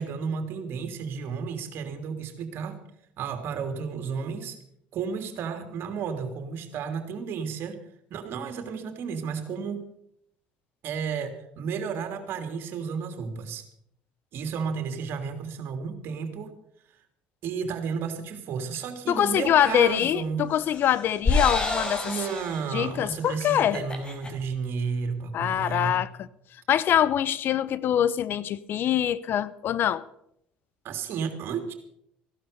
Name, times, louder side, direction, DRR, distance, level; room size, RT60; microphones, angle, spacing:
voice 1, 0.0-2.8 3.2-4.6 4.9-7.8 8.1-9.8 10.8-13.6 14.3-16.5 17.4-20.5 22.0-26.0 30.8-31.7, right 6 dB, 60° right, 3.1 m, -32 dB
voice 2, 19.1-22.2 22.7-23.8 25.3-26.3 26.7-30.0, left 10 dB, 55° left, 0.8 m, -24 dB
sound 1, 19.5-20.0 20.5-22.8 23.2-23.3 23.6-24.3, left 3 dB, 25° left, 4.5 m, -29 dB
16.0 x 12.0 x 6.8 m
hypercardioid pair, 75°, 4 cm